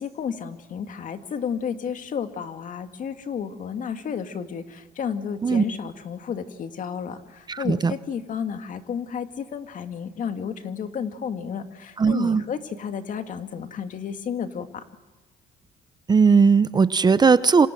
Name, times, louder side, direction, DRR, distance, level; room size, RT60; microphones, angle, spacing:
voice 1, 0.0-14.8, left 7 dB, 50° left, 7 dB, 2.2 m, -32 dB
voice 2, 7.5-7.9 12.0-12.4 16.1-17.7, right 5 dB, 25° right, 15 dB, 0.8 m, -18 dB
27.5 x 26.5 x 7.7 m, 1.3 s
cardioid pair, 110°, 17 cm